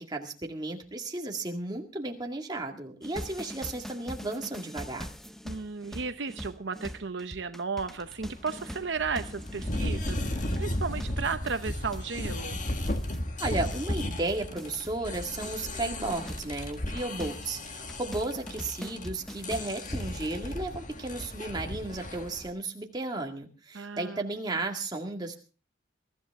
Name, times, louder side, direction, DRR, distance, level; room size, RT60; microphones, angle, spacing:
voice 1, 0.0-5.1 13.4-25.3, right 2 dB, 20° right, 2 dB, 2.1 m, -34 dB
sound 1, 3.0-15.7 16.0-20.4, equal, ahead, 0.7 m, -43 dB
voice 2, 5.4-12.6 23.7-24.3, right 5 dB, 65° right, 9 dB, 0.8 m, -34 dB
sound 2, 7.9-22.5, left 1 dB, 40° left, 1.8 m, -35 dB
22.5 x 13.5 x 3.6 m, 0.35 s
head